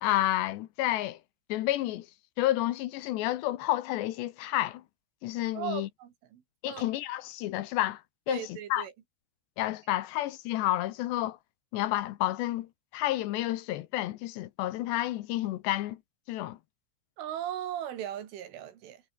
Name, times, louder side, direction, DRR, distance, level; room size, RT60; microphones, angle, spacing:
voice 1, 0.0-1.2 1.5-2.1 2.4-4.8 5.2-5.9 6.6-8.0 8.3-8.4 8.7-8.9 9.6-11.4 11.7-16.0 16.3-16.6, left 15 dB, 75° left, 2.8 m, -30 dB
voice 2, 5.5-6.9 8.3-8.9 17.2-19.0, right 10 dB, 70° right, 4.9 m, -38 dB
omnidirectional pair, 5.8 m